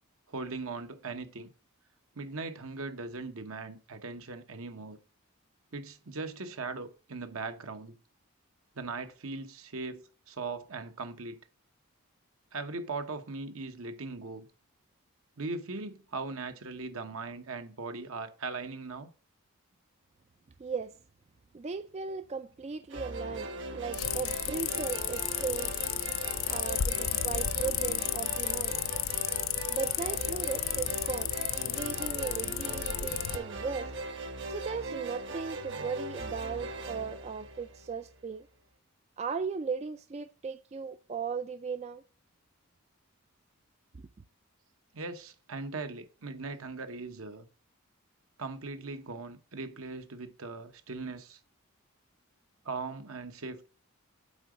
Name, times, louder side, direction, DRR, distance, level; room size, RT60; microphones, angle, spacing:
voice 1, 0.3-1.5 2.1-5.0 5.7-8.0 8.7-11.4 12.5-14.5 15.4-19.1 44.9-47.5 48.4-51.4 52.6-53.7, right 3 dB, 70° right, 1.1 m, -39 dB
voice 2, 20.6-20.9 21.5-25.7 26.5-28.8 29.7-31.3 31.6-33.9 34.5-38.5 39.2-42.0, right 5 dB, 30° right, 0.3 m, -37 dB
sound 1, 22.9-38.2, right 2 dB, 55° right, 1.2 m, -39 dB
sound 2, 23.9-33.4, left 12 dB, 70° left, 0.4 m, -33 dB
8.8 x 3.9 x 6.3 m
head